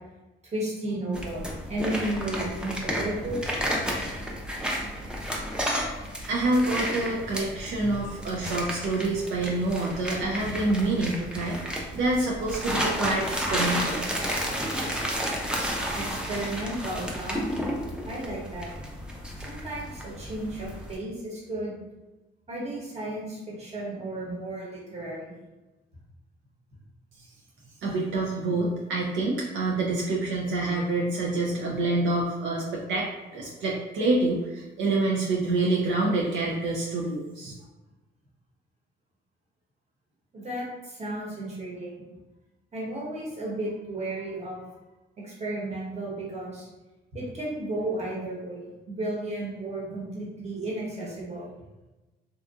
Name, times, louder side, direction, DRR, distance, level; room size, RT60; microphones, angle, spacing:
voice 1, 0.4-3.4 16.0-17.4 18.0-18.7 19.4-21.7 22.5-25.3 40.3-41.9 42.7-44.6 45.2-46.7 47.1-51.5, right 1 dB, 35° right, -5 dB, 1.1 m, -33 dB
sound 1, 1.1-21.0, equal, 5° right, 0.5 m, -32 dB
voice 2, 6.3-14.0 27.8-33.1 33.3-37.5, right 2 dB, 75° right, -3 dB, 0.5 m, -27 dB
2.6 x 2.4 x 2.4 m, 1.1 s
cardioid pair, 90°, 20 cm